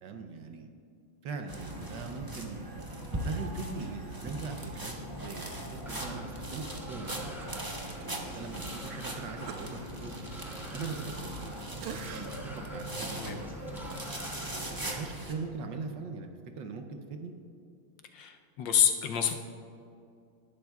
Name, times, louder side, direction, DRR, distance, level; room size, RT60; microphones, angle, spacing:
voice 1, 0.0-0.7 1.2-2.8 3.1-7.3 8.1-10.1 10.7-11.7 12.1-14.0 14.7-16.3 16.6-17.3, right 4 dB, 65° right, 5 dB, 1.3 m, -41 dB
sound 1, 1.5-15.3, right 1 dB, 20° right, 0.6 m, -39 dB
sound 2, 5.9-15.1, equal, ahead, 1.0 m, -49 dB
Cough, 7.1-8.1 8.5-8.7 9.5-11.5 11.8-12.5 13.0-13.2, right 7 dB, 85° right, 1.6 m, -46 dB
voice 2, 18.1-19.3, left 8 dB, 70° left, 5 dB, 1.2 m, -27 dB
19.0 x 11.5 x 2.3 m, 2.5 s
omnidirectional pair, 2.3 m